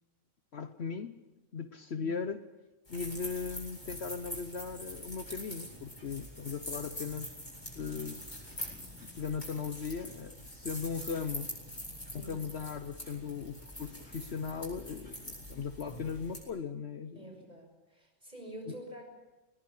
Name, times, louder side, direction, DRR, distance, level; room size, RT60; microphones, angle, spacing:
voice 1, 0.5-1.2 1.5-2.4 2.9-7.3 7.7-8.2 9.0-11.5 12.1-17.2 18.7-18.8, left 6 dB, 55° left, 10 dB, 1.1 m, -38 dB
sound 1, 2.8-16.4, equal, 20° left, 8.0 m, -44 dB
voice 2, 17.1-19.1, right 1 dB, 30° right, 2 dB, 6.9 m, -47 dB
21.5 x 19.5 x 8.5 m, 1.1 s
omnidirectional pair, 1.4 m